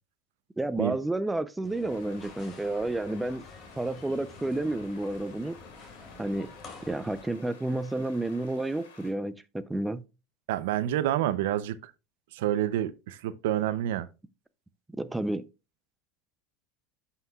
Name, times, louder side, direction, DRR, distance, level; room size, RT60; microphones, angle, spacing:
voice 1, 0.6-3.5 3.8-5.6 6.2-6.5 6.9-10.0 15.0-15.5, right 2 dB, 10° right, 0.5 m, -31 dB
sound 1, 1.6-7.2, left 4 dB, 35° left, 2.4 m, -49 dB
sound 2, 1.9-9.1, left 6 dB, 85° left, 3.2 m, -54 dB
voice 2, 10.5-11.9 12.3-14.1, right 12 dB, 80° right, 0.6 m, -28 dB
11.0 x 5.7 x 2.3 m
supercardioid pair, 105°, 0 cm